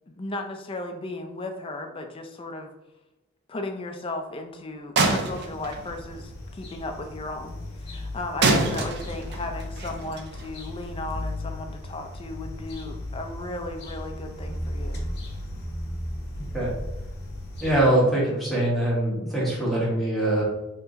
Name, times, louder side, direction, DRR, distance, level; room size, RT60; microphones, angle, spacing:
voice 1, 0.1-2.7 3.5-15.0, left 2 dB, 25° left, 4 dB, 0.4 m, -35 dB
sound 1, 5.0-6.2 8.4-10.9, right 3 dB, 50° right, 0.5 m, -26 dB
sound 2, 5.2-17.9, left 1 dB, 50° left, 0.8 m, -36 dB
voice 2, 16.4-16.7 17.6-20.4, right 1 dB, ahead, -7 dB, 1.1 m, -23 dB
4.5 x 2.9 x 2.6 m, 1.0 s
head